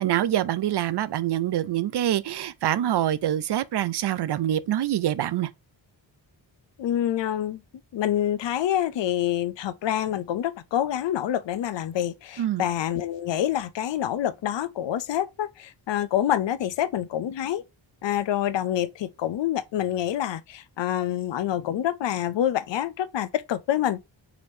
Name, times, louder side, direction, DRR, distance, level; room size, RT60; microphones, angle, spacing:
voice 1, 0.0-5.5 12.4-12.6, right 11 dB, 60° right, 0.5 m, -25 dB
voice 2, 6.8-7.6 7.9-17.6 18.0-24.0, left 11 dB, 70° left, 0.6 m, -27 dB
4.9 x 3.5 x 2.6 m
wide cardioid pair, 120°, 46 cm